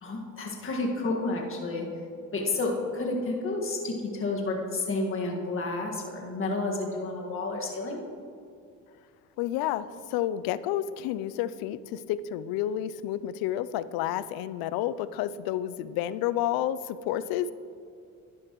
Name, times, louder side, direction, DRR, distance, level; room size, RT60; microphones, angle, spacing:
voice 1, 0.0-1.9 2.3-8.0, left 2 dB, 35° left, -1 dB, 1.7 m, -30 dB
voice 2, 9.4-17.5, left 12 dB, 80° left, 16 dB, 0.5 m, -30 dB
11.5 x 9.9 x 3.0 m, 2.5 s
supercardioid pair, 85°, 36 cm